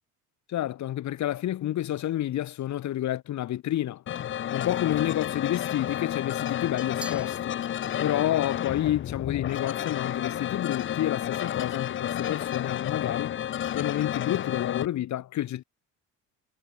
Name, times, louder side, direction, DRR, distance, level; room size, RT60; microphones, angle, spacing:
voice 1, 0.5-4.0 4.5-7.6 8.0-13.4 13.7-15.6, left 13 dB, 55° left, 2.6 m, -29 dB
sound 1, 4.1-14.9, left 11 dB, 35° left, 0.7 m, -31 dB
Glass, 7.0-8.2, right 1 dB, 5° right, 2.9 m, -44 dB
cardioid pair, 105°, 33 cm